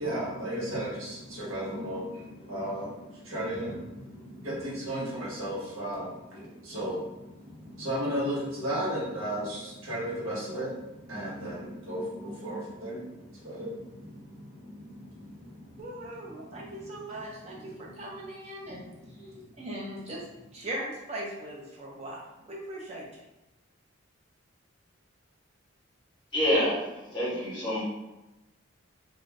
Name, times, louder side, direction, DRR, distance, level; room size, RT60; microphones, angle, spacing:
voice 1, 0.0-18.1 18.6-20.2, equal, 85° right, -6 dB, 1.0 m, -36 dB
voice 2, 15.8-18.9 19.6-20.2 20.5-23.1, right 1 dB, 30° right, -3 dB, 0.4 m, -39 dB
voice 3, 26.3-27.8, equal, 25° left, -9 dB, 0.9 m, -27 dB
2.4 x 2.2 x 3.2 m, 0.99 s
head